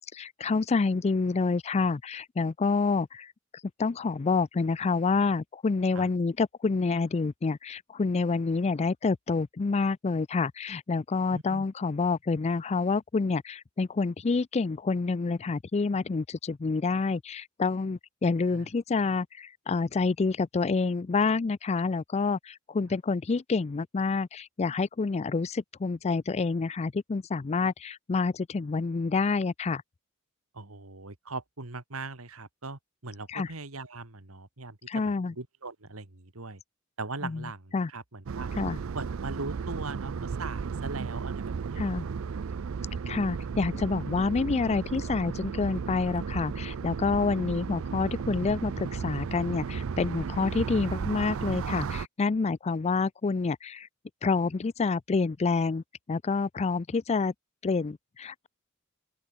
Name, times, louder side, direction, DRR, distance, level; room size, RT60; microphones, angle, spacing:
voice 1, 0.0-29.8 33.3-33.5 34.9-35.3 37.2-37.5 37.7-37.9 38.5-38.8 41.8-42.1 43.1-53.9 54.2-55.8 56.1-57.3 57.6-58.5, left 4 dB, 30° left, 0.4 m, -28 dB
voice 2, 11.3-11.6 18.5-18.7 30.5-36.6 37.0-38.5 38.9-41.4 41.7-42.3, right 3 dB, 85° right, 2.4 m, -40 dB
sound 1, 38.3-52.1, right 5 dB, 70° right, 0.4 m, -34 dB
open air
head